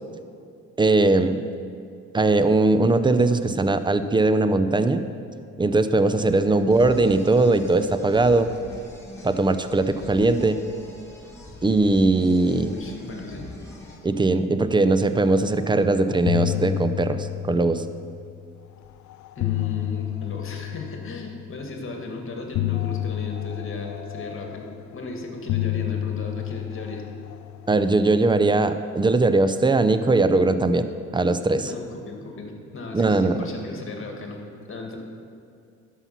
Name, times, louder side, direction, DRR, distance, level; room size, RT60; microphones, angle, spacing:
voice 1, 0.8-1.4 2.1-5.0 5.6-8.5 9.2-10.6 11.6-12.7 14.0-17.8 27.7-30.9 31.1-31.7 32.9-33.4, right 2 dB, 15° right, 11 dB, 0.5 m, -20 dB
sound 1, 6.1-14.0, left 2 dB, 10° left, 1.8 m, -43 dB
voice 2, 12.6-13.5 19.4-27.0 31.6-34.4 34.7-35.0, left 2 dB, 45° left, 2 dB, 1.8 m, -36 dB
sound 2, 15.6-18.4 19.1-21.5 22.5-25.0 25.5-28.1, left 15 dB, 70° left, 0.4 m, -30 dB
12.0 x 5.7 x 5.8 m, 2.4 s
cardioid pair, 90°, 30 cm